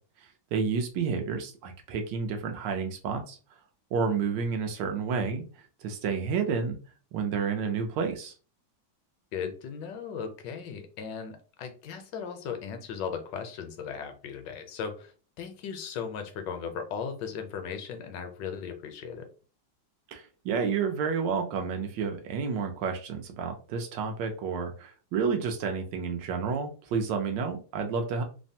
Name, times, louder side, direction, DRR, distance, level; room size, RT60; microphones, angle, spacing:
voice 1, 0.2-3.4 3.9-5.4 5.8-6.8 7.1-8.3 20.1-28.2, right 5 dB, 75° right, 4 dB, 1.2 m, -30 dB
voice 2, 9.3-15.1 15.4-19.3, left 6 dB, 75° left, 6 dB, 1.2 m, -37 dB
3.3 x 2.1 x 2.6 m, 0.37 s
omnidirectional pair, 2.0 m